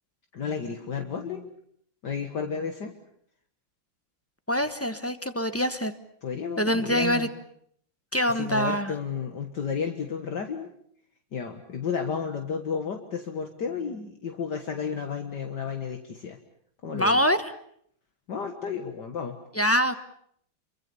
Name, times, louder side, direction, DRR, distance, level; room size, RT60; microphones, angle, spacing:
voice 1, 0.3-1.5 2.0-2.9 6.2-7.3 8.4-10.7 11.3-16.4 16.8-17.2 18.3-19.4, left 6 dB, 60° left, 5 dB, 2.2 m, -32 dB
voice 2, 4.5-5.9 6.6-7.3 8.1-8.9 16.9-17.5 19.5-19.9, equal, 10° left, 10 dB, 0.9 m, -24 dB
27.5 x 24.0 x 7.0 m, 0.66 s
omnidirectional pair, 2.1 m